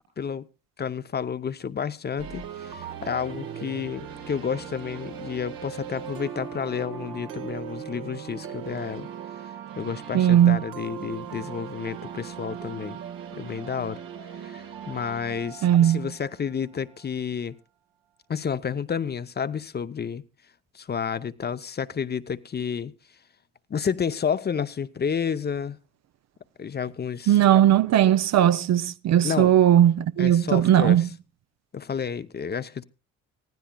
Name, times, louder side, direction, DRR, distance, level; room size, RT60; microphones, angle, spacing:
voice 1, 0.2-0.5 0.8-9.1 9.8-13.0 13.3-14.0 14.3-17.6 18.3-20.2 20.7-22.9 23.7-25.8 26.6-27.4 29.2-29.5 30.2-31.1 31.7-32.8, left 7 dB, 30° left, 0.6 m, -30 dB
sound 1, 2.2-17.0, right 9 dB, 75° right, 1.6 m, -39 dB
voice 2, 10.1-10.6 15.6-16.1 27.3-31.1, right 11 dB, 50° right, 0.6 m, -18 dB
24.0 x 15.5 x 2.3 m
supercardioid pair, 70°, 33 cm